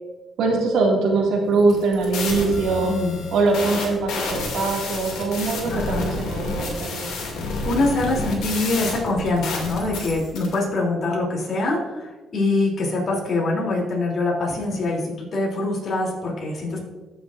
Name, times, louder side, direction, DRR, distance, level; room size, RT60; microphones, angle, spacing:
voice 1, 0.4-2.9 3.3-7.0, right 3 dB, 80° right, -1 dB, 2.1 m, -22 dB
sound 1, 1.6-10.5, left 3 dB, 90° left, 2.3 m, -30 dB
voice 2, 2.8-3.2 5.7-6.1 7.6-16.8, left 2 dB, 55° left, -2 dB, 2.9 m, -24 dB
15.0 x 7.0 x 2.5 m, 1.2 s
cardioid pair, 90°, 0 cm